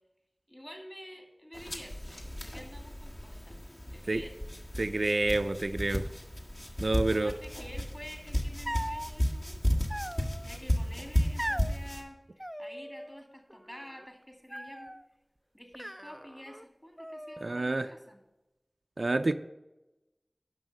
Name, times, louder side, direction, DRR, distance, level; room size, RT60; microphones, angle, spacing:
voice 1, 0.5-3.6 3.9-4.6 7.1-9.8 10.4-15.0 15.5-18.2, equal, 20° left, 2.1 m, -49 dB
sound 1, 1.5-12.0, equal, 40° left, 1.5 m, -34 dB
voice 2, 4.8-6.1 6.8-7.3 17.4-17.9 19.0-19.3, right 2 dB, 75° right, 0.4 m, -28 dB
sound 2, 8.7-9.1 9.9-10.6 11.4-11.8 12.4-13.2 13.5-14.1 14.5-15.0 15.7-16.7 17.0-17.7, equal, 5° right, 0.3 m, -39 dB
11.0 x 6.2 x 6.4 m
wide cardioid pair, 50°, 0 cm